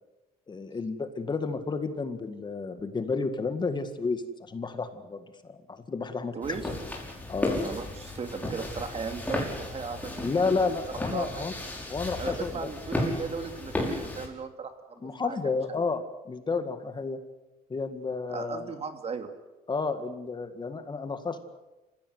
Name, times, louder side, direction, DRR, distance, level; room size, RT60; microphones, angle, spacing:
voice 1, 0.5-6.7 7.3-7.7 10.2-11.5 11.9-12.7 15.0-17.2 17.7-18.7 19.7-21.4, left 4 dB, 25° left, 9 dB, 1.9 m, -31 dB
voice 2, 6.3-6.6 7.6-10.6 10.8-11.5 12.2-15.4 18.3-19.3, right 5 dB, 35° right, 7 dB, 2.6 m, -37 dB
sound 1, 6.4-14.3, left 1 dB, 10° left, 5.7 m, -34 dB
27.0 x 16.0 x 8.1 m, 1.1 s
cardioid pair, 110°, 17 cm